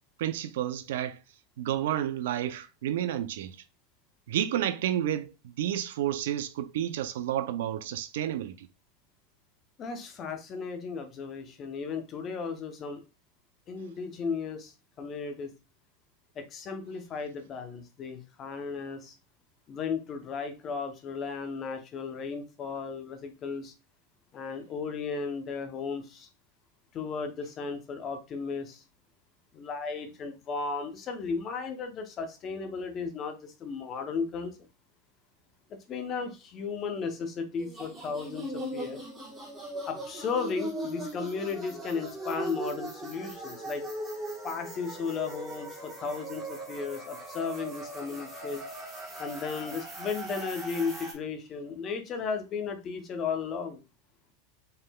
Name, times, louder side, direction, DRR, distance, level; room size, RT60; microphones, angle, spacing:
voice 1, 0.2-1.2 1.6-3.6 4.3-5.3 5.6-8.7, right 11 dB, 75° right, 0.4 m, -30 dB
voice 2, 9.8-13.0 13.7-15.5 16.4-19.1 19.7-23.7 24.3-26.3 26.9-28.8 29.5-34.6 35.9-39.0 39.9-43.8 44.4-48.6 49.2-53.8, left 5 dB, 25° left, 0.7 m, -35 dB
sound 1, 37.6-51.1, right 1 dB, 10° right, 1.2 m, -39 dB
5.4 x 3.7 x 2.2 m
supercardioid pair, 175°, 0 cm